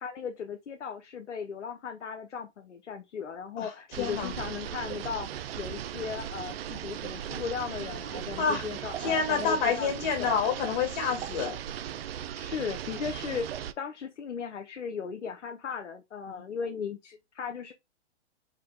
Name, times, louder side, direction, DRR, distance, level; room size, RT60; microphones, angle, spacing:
voice 1, 0.0-5.3 5.6-9.9 10.2-10.4 12.3-17.7, left 6 dB, 85° left, 0.9 m, -37 dB
sound 1, 3.9-13.7, right 10 dB, 55° right, 0.5 m, -38 dB
voice 2, 4.0-4.3 8.4-8.6 9.0-11.6 16.3-16.4, left 6 dB, 40° left, 2.0 m, -28 dB
4.8 x 2.8 x 3.3 m
hypercardioid pair, 135°, 35 cm